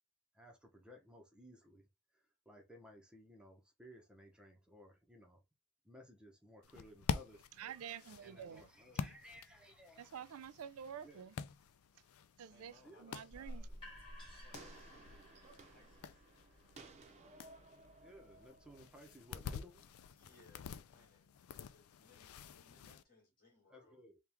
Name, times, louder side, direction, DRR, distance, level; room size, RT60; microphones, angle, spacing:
voice 1, 0.3-5.4 5.8-7.7 8.2-10.1 11.0-11.3 12.8-13.1 18.0-19.7 23.7-24.2, equal, 5° right, 0.8 m, -59 dB
sound 1, 6.6-23.0, left 6 dB, 85° left, 0.4 m, -48 dB
voice 2, 7.6-8.7 10.0-11.3 12.4-12.7 13.0-13.7, right 8 dB, 90° right, 0.4 m, -48 dB
voice 3, 12.5-13.9 14.3-16.2 20.1-24.0, left 2 dB, 45° left, 2.0 m, -67 dB
sound 2, 13.3-19.1, equal, 25° left, 2.6 m, -55 dB
sound 3, 13.7-19.8, right 3 dB, 35° right, 0.7 m, -60 dB
4.4 x 2.4 x 3.5 m
head